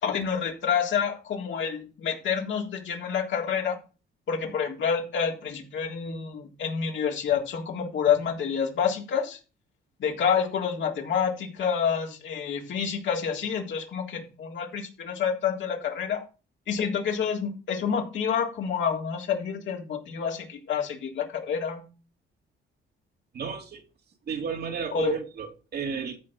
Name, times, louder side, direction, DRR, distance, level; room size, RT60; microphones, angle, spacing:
voice 1, 0.0-3.8 4.3-9.4 10.0-16.2 16.7-21.8 24.9-25.2, left 7 dB, 70° left, 3.6 m, -28 dB
voice 2, 23.3-23.8 24.3-26.2, right 6 dB, 55° right, 2.5 m, -32 dB
14.0 x 4.9 x 6.0 m
cardioid pair, 90°, 20 cm